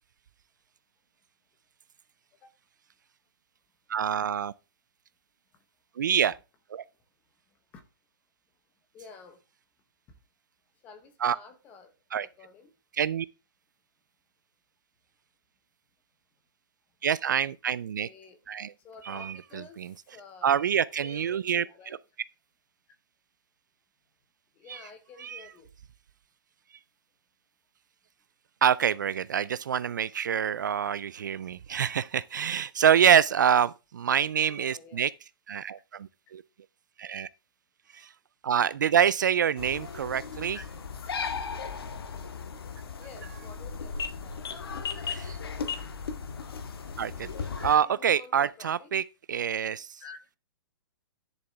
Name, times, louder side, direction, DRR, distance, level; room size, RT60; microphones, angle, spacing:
voice 1, 3.9-4.5 6.0-6.3 6.7-6.8 11.2-11.4 12.1-12.3 13.0-13.3 17.0-18.1 18.5-18.7 19.0-19.9 20.4-22.0 24.7-24.8 25.2-25.5 28.6-35.1 35.5-36.4 37.0-37.3 37.9-38.1 38.4-40.6 45.1-45.4 47.0-47.3 47.6-50.0, right 8 dB, 50° right, 0.4 m, -26 dB
voice 2, 8.9-9.4 10.8-11.9 12.2-12.7 18.0-18.4 18.8-19.8 20.1-20.6 21.0-22.0 24.6-25.7 34.5-35.0 40.5-40.6 43.0-44.5 47.6-48.9 50.0-50.2, left 5 dB, 10° left, 0.9 m, -49 dB
sound 1, 39.6-47.8, left 5 dB, 75° left, 1.9 m, -36 dB
11.0 x 7.1 x 3.4 m
hypercardioid pair, 180°, 13 cm